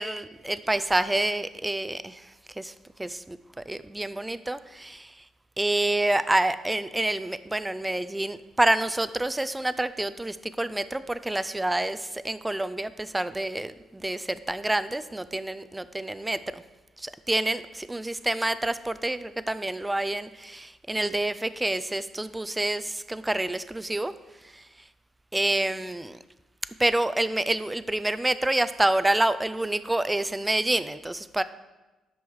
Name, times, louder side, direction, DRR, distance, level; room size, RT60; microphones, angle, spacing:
voice 1, 0.0-2.2 2.6-2.7 3.0-3.4 3.7-5.1 5.6-16.6 17.0-24.1 25.3-26.2 26.8-31.4, right 1 dB, 10° right, 14 dB, 0.3 m, -27 dB
12.5 x 5.4 x 3.1 m, 1.1 s
cardioid pair, 90°, 0 cm